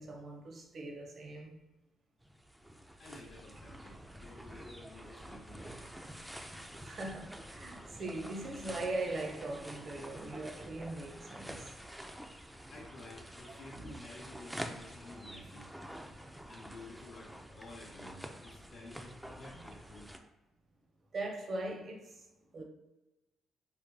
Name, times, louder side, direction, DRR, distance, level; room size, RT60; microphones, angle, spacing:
voice 1, 0.0-1.6 6.8-11.7 13.5-13.6 19.6-19.7 21.1-22.3 22.5-22.6, right 2 dB, 50° right, 0.6 m, -40 dB
sound 1, 2.2-20.2, equal, 5° right, 0.3 m, -48 dB
voice 2, 3.0-5.9 12.7-15.7 16.5-20.1, left 2 dB, 60° left, 0.6 m, -52 dB
3.5 x 2.1 x 3.0 m
cardioid pair, 90°, 0 cm